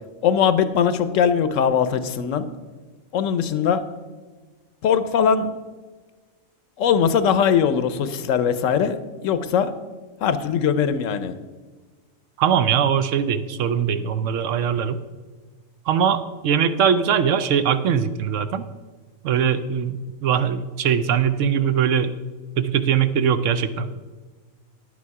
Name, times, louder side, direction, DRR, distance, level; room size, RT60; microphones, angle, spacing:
voice 1, 0.2-2.5 3.1-3.8 4.8-5.5 6.8-9.7 10.2-11.3, left 7 dB, 75° left, 12 dB, 1.0 m, -20 dB
voice 2, 12.4-15.0 15.9-18.6 19.2-22.1 22.6-24.0, right 8 dB, 70° right, 12 dB, 0.9 m, -21 dB
10.0 x 8.4 x 4.7 m, 1.3 s
omnidirectional pair, 1.4 m